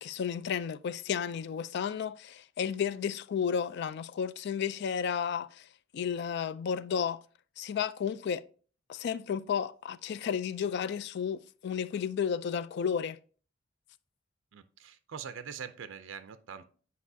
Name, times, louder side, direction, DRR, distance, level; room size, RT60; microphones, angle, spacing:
voice 1, 0.0-5.7 5.9-7.2 7.6-8.4 8.9-13.2, left 7 dB, 60° left, 0.3 m, -32 dB
voice 2, 14.5-16.7, right 7 dB, 80° right, 0.5 m, -43 dB
8.3 x 4.8 x 2.7 m
head